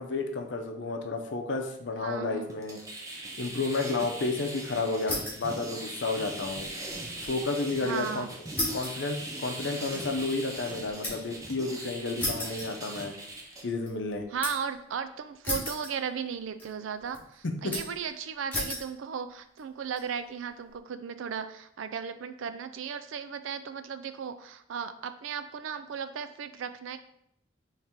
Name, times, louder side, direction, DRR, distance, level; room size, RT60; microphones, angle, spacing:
voice 1, 0.0-2.8 3.4-6.7 7.2-8.3 8.7-13.1 13.6-14.2 17.4-17.7, left 3 dB, 70° left, 4 dB, 0.6 m, -31 dB
voice 2, 2.0-2.5 7.8-8.3 14.3-27.0, right 7 dB, 80° right, 11 dB, 0.4 m, -36 dB
sound 1, 2.5-13.6, right 1 dB, 15° right, 0.6 m, -40 dB
sound 2, 5.0-5.5 5.9-7.4 7.7-7.8 8.6-11.4 12.2-13.3 13.7-14.7 15.4-16.3 16.6-17.2 17.7-18.1 18.5-18.9 19.6-20.0, left 1 dB, 10° left, 1.2 m, -35 dB
4.3 x 3.2 x 3.6 m, 0.73 s
head